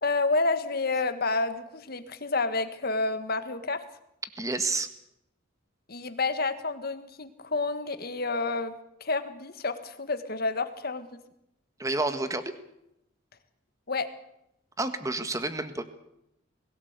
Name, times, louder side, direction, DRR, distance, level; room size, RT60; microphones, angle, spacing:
voice 1, 0.0-3.8 5.9-8.7 9.0-11.2 13.9-14.1, left 3 dB, 50° left, 10 dB, 1.7 m, -29 dB
voice 2, 4.4-4.9 11.8-12.5 14.8-15.8, right 2 dB, 15° right, 10 dB, 1.6 m, -29 dB
21.5 x 17.0 x 8.2 m, 0.82 s
head